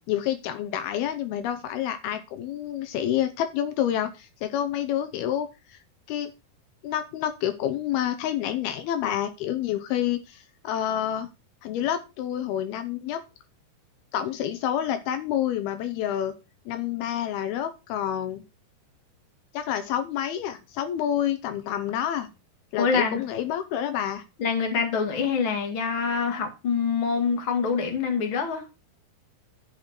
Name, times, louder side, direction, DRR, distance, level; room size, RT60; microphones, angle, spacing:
voice 1, 0.1-5.8 6.1-6.3 6.8-11.3 11.6-13.2 14.1-16.3 16.7-18.4 19.5-22.3 22.7-24.2, left 10 dB, 80° left, 9 dB, 2.7 m, -28 dB
voice 2, 22.8-23.2 24.4-28.6, left 5 dB, 40° left, 3 dB, 2.4 m, -25 dB
14.0 x 5.1 x 4.4 m, 0.28 s
omnidirectional pair, 4.6 m